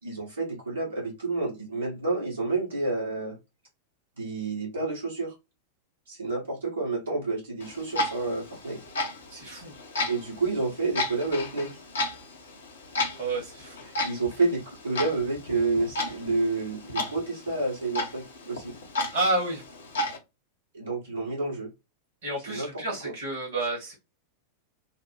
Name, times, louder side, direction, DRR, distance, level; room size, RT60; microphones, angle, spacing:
voice 1, 0.0-3.4 4.2-5.3 6.1-8.8 10.0-11.7 14.0-18.7 20.7-21.7 22.5-22.7 23.0-23.1, right 3 dB, 75° right, -5 dB, 1.7 m, -29 dB
Clock, 7.6-20.2, left 2 dB, 70° left, 0.9 m, -34 dB
voice 2, 9.3-9.7 13.2-13.9 19.1-19.6 22.2-23.9, right 2 dB, 55° right, -2 dB, 1.7 m, -30 dB
3.8 x 2.1 x 3.2 m, 0.24 s
figure-of-eight pair, 90°, 0 cm